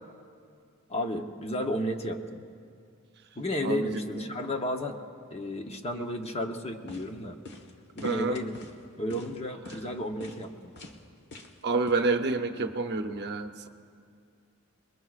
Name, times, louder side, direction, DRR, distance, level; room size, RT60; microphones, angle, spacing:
voice 1, 0.9-2.4 3.4-5.0 5.3-7.4 7.9-8.6 9.0-10.7, equal, 30° left, 4 dB, 0.9 m, -33 dB
sound 1, 6.5-6.6 6.9-7.1 7.5-7.7 8.0-8.7 9.1-9.4 9.7-9.8 10.2-10.5 10.8-11.0 11.3-11.6 11.9-12.0, left 2 dB, 50° left, 1.3 m, -43 dB
voice 2, 8.0-8.4 11.6-13.7, right 3 dB, 50° right, 7 dB, 0.7 m, -28 dB
28.0 x 21.0 x 2.4 m, 2.3 s
head